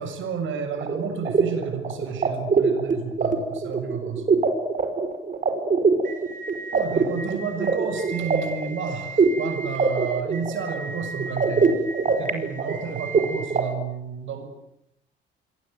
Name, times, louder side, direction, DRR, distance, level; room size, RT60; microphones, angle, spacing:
voice 1, 0.0-4.3 6.7-11.8 12.1-14.4, right 6 dB, 80° right, 8 dB, 7.1 m, -31 dB
sound 1, 0.8-13.6, right 4 dB, 40° right, 5.2 m, -24 dB
27.5 x 23.0 x 9.5 m, 0.78 s
cardioid pair, 90°, 20 cm